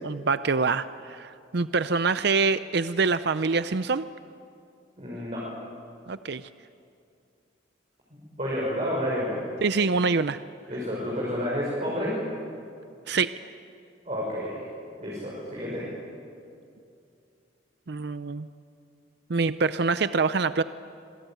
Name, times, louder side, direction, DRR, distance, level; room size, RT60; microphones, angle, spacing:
voice 1, 0.0-4.1 6.1-6.5 9.6-10.4 13.1-13.3 17.9-18.5 19.3-20.6, right 4 dB, 60° right, 13 dB, 0.6 m, -25 dB
voice 2, 5.0-5.5 8.1-9.4 10.7-12.2 14.0-14.7 15.0-15.9, equal, 35° right, -5 dB, 6.4 m, -30 dB
27.0 x 22.0 x 9.2 m, 2.5 s
head